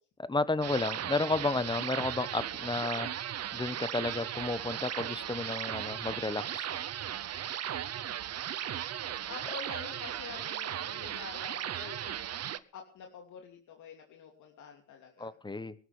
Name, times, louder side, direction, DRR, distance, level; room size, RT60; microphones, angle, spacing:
voice 1, 0.3-3.1 3.5-6.7 15.2-15.7, left 3 dB, 15° left, 15 dB, 1.2 m, -32 dB
sound 1, 0.6-12.6, right 10 dB, 55° right, 0.9 m, -37 dB
voice 2, 9.3-15.3, left 6 dB, 75° left, 2 dB, 2.9 m, -47 dB
23.0 x 12.5 x 3.5 m, 0.40 s
cardioid pair, 90°, 30 cm